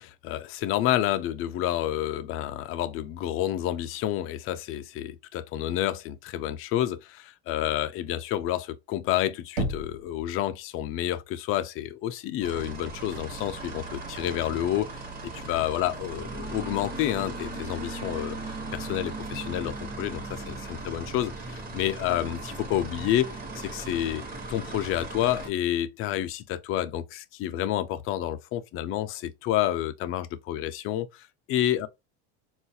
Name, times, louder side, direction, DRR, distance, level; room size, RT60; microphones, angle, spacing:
voice 1, 0.0-24.2 24.5-31.9, left 12 dB, 45° left, 0.4 m, -29 dB
Knock, 9.6-10.5, right 1 dB, 80° right, 0.9 m, -32 dB
sound 1, 12.4-25.5, right 3 dB, 30° right, 1.0 m, -38 dB
3.8 x 2.4 x 2.7 m
cardioid pair, 140°, 31 cm